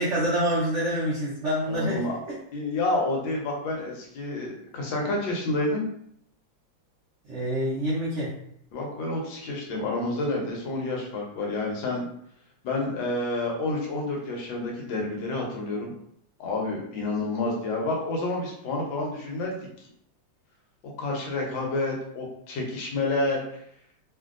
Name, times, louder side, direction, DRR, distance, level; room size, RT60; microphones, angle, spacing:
voice 1, 0.0-2.1 7.3-8.3, equal, 75° right, -6 dB, 0.6 m, -26 dB
voice 2, 1.7-2.1 2.5-5.8 8.7-12.0 12.6-15.9 16.4-19.6 20.8-23.4, left 2 dB, 75° left, -1 dB, 1.5 m, -29 dB
3.2 x 2.6 x 2.5 m, 0.69 s
omnidirectional pair, 2.2 m